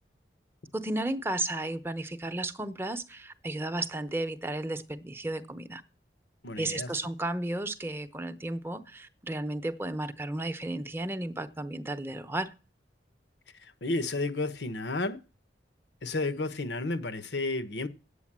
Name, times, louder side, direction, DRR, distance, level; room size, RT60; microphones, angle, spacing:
voice 1, 0.7-5.8 6.6-12.5, right 1 dB, 15° right, 0.8 m, -33 dB
voice 2, 6.4-6.9 13.8-15.2 16.0-17.9, left 2 dB, 80° left, 1.1 m, -31 dB
8.4 x 8.3 x 7.4 m
head